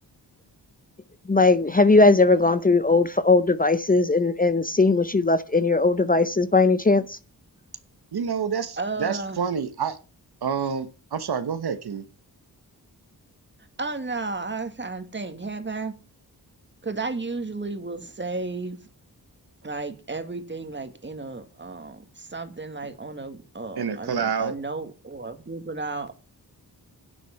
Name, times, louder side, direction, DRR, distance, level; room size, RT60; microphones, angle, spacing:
voice 1, 1.3-7.2, left 3 dB, 20° left, 0.6 m, -19 dB
voice 2, 8.1-10.0 10.4-12.0 23.8-24.5, right 6 dB, 75° right, 1.1 m, -28 dB
voice 3, 8.8-9.4 13.8-16.0 16.8-18.8 19.6-26.1, right 3 dB, 30° right, 1.8 m, -33 dB
10.0 x 7.4 x 5.7 m
cardioid pair, 70°, 39 cm